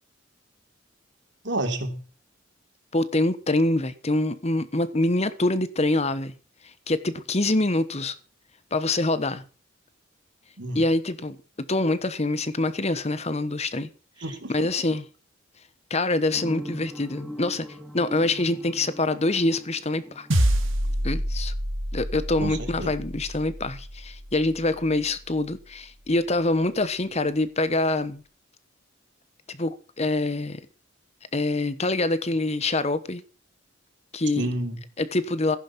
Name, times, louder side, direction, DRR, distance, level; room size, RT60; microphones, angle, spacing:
voice 1, 1.4-2.0 10.6-10.8 14.2-14.7 22.4-22.9 34.4-34.8, right 1 dB, 65° right, 3.3 m, -30 dB
voice 2, 2.9-6.3 6.9-8.1 8.7-9.4 10.7-13.9 14.5-15.0 15.9-17.7 17.9-20.3 21.0-21.5 21.9-28.2 29.5-30.6 31.3-33.2 34.1-34.5 35.0-35.6, left 2 dB, 35° left, 1.1 m, -25 dB
sound 1, 16.3-21.1, equal, ahead, 2.1 m, -40 dB
sound 2, 20.3-24.9, equal, 90° right, 2.4 m, -27 dB
14.5 x 11.0 x 5.9 m
head